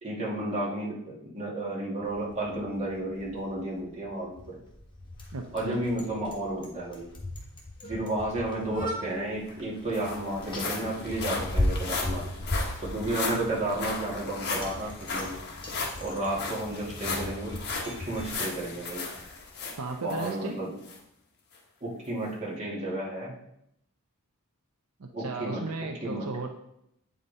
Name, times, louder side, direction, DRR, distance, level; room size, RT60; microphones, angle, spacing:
voice 1, 0.0-4.6 5.5-7.1 7.8-12.3 12.8-15.4 16.0-17.6 17.8-19.0 20.0-20.7 21.8-23.3 25.1-25.6 26.0-26.3, right 1 dB, 30° right, -5 dB, 2.2 m, -32 dB
Bicycle, 2.0-18.3, left 1 dB, 20° left, 1.4 m, -37 dB
voice 2, 5.3-5.8 19.8-20.6 25.0-26.5, right 3 dB, 80° right, 4 dB, 0.7 m, -35 dB
sound 1, 9.1-9.2 9.5-20.4 20.8-21.0 21.5-21.6, left 4 dB, 50° left, 1.4 m, -36 dB
8.6 x 5.1 x 4.1 m, 0.79 s
head